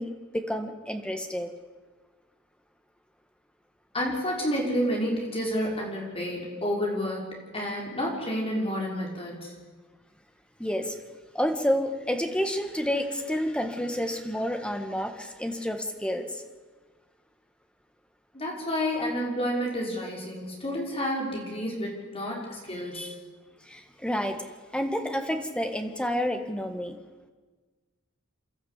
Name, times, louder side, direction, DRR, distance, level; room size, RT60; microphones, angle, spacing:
voice 1, 0.0-1.5 10.6-11.0 11.3-16.4 22.9-23.1 23.7-27.0, equal, 5° left, 5 dB, 1.8 m, -29 dB
voice 2, 3.9-9.5 18.3-23.1, equal, 30° left, -2 dB, 5.6 m, -30 dB
29.0 x 12.5 x 8.4 m, 1.4 s
head